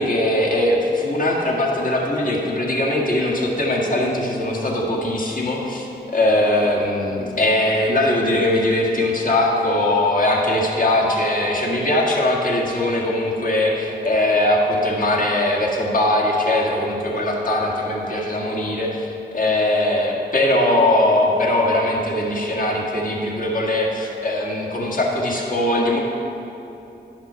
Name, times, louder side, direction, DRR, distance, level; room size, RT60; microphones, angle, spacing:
voice 1, 0.0-5.9 6.1-26.0, left 1 dB, 50° left, -2 dB, 1.8 m, -20 dB
11.0 x 5.9 x 5.6 m, 2.9 s
cardioid pair, 65°, 18 cm